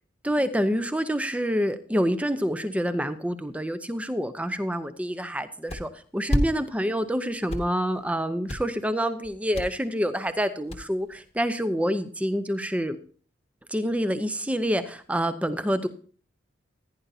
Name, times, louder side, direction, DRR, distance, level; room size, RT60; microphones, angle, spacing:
voice 1, 0.2-13.0 13.7-15.9, equal, 5° right, 11 dB, 0.6 m, -27 dB
sound 1, 5.7-5.8 6.3-6.4 6.8-7.1 7.3-8.2 8.5-8.8 9.2-9.7 10.0-10.1 10.3-10.4 10.7-11.3, left 1 dB, 30° left, 1.1 m, -27 dB
15.0 x 10.0 x 2.7 m, 0.43 s
head